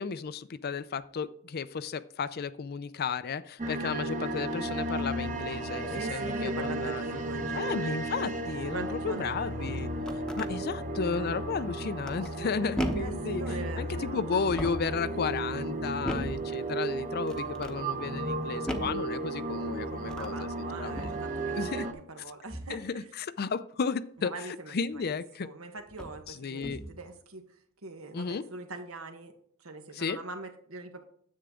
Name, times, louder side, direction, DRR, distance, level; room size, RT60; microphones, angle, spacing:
voice 1, 0.0-7.2 7.5-9.9 10.4-13.4 13.8-20.5 20.8-21.1 21.5-21.9 22.7-24.3 24.7-25.5 26.3-26.8 28.1-28.4 29.9-30.2, left 5 dB, 45° left, 14 dB, 0.5 m, -33 dB
sound 1, 3.6-21.9, right 2 dB, 35° right, 1.2 m, -34 dB
voice 2, 5.9-8.0 8.6-9.7 11.1-11.4 13.0-14.4 14.7-15.4 20.1-23.0 24.2-27.4 27.8-29.3 29.6-31.0, right 3 dB, 75° right, 6 dB, 1.5 m, -42 dB
sound 2, 9.9-10.5 12.0-12.4 12.8-13.3 14.4-15.0 16.0-16.5 17.3-17.8 18.7-19.1 20.0-20.4 20.9-21.3 22.5-22.8 24.9-25.0 25.9-26.2 26.6-27.0, equal, 5° left, 0.9 m, -36 dB
10.0 x 8.0 x 3.8 m, 0.63 s
head